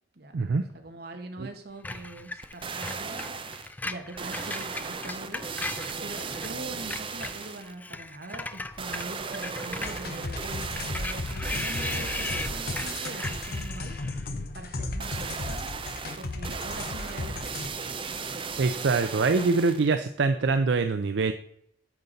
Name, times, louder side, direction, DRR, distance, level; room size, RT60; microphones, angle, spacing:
voice 1, 0.7-5.5 6.0-14.0 14.5-15.6 16.2-17.5, right 2 dB, 60° right, 5 dB, 1.3 m, -43 dB
Screech, 1.8-6.5 6.8-14.3, left 2 dB, 10° left, 0.3 m, -38 dB
sound 1, 2.4-3.7 4.2-7.7 8.8-13.8 15.0-20.0 20.4-20.5, right 5 dB, 30° right, 0.6 m, -36 dB
sound 2, 9.8-17.7, left 2 dB, 55° left, 0.8 m, -35 dB
voice 2, 18.6-21.3, right 4 dB, 75° right, 8 dB, 0.5 m, -24 dB
9.5 x 6.7 x 4.0 m, 0.69 s
head